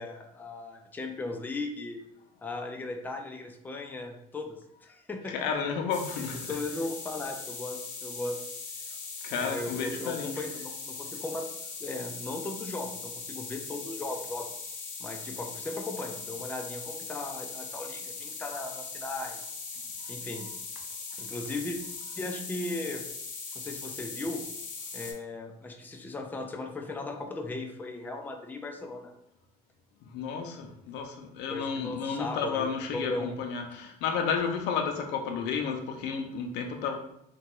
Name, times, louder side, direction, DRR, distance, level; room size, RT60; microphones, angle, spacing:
voice 1, 0.0-2.0 2.4-5.3 6.2-8.4 9.4-11.5 11.8-14.5 15.0-19.5 20.1-20.5 21.2-21.8 22.2-23.0 23.5-24.4 24.9-29.1 31.5-33.3, left 2 dB, 10° left, 3 dB, 0.3 m, -37 dB
voice 2, 5.3-6.5 9.2-10.4 30.0-37.0, left 6 dB, 85° left, 3 dB, 0.5 m, -32 dB
sound 1, 5.9-25.1, left 4 dB, 45° left, 0.7 m, -40 dB
2.9 x 2.2 x 2.9 m, 0.78 s
cardioid pair, 110°, 17 cm